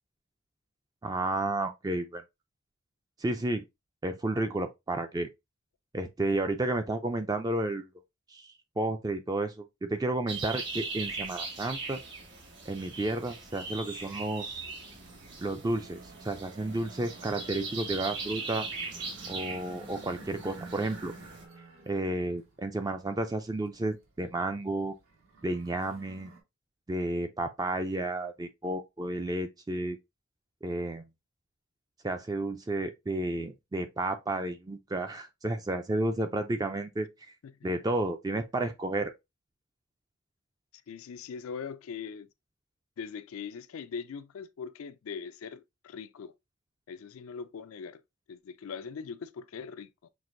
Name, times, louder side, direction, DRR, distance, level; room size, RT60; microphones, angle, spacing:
voice 1, 1.0-2.2 3.2-3.6 4.0-5.3 5.9-7.9 8.3-12.0 12.7-14.6 15.4-18.7 19.3-21.1 21.9-24.9 25.4-26.3 26.9-30.0 30.6-31.0 32.0-37.1 37.6-39.1, right 2 dB, 20° right, 0.3 m, -32 dB
sound 1, 10.3-21.4, right 4 dB, 55° right, 1.4 m, -40 dB
sound 2, 14.4-26.4, right 3 dB, 75° right, 1.4 m, -52 dB
voice 2, 40.9-42.3 43.0-46.3 46.9-48.0 48.3-50.1, left 6 dB, 85° left, 0.4 m, -41 dB
5.9 x 2.5 x 2.5 m
head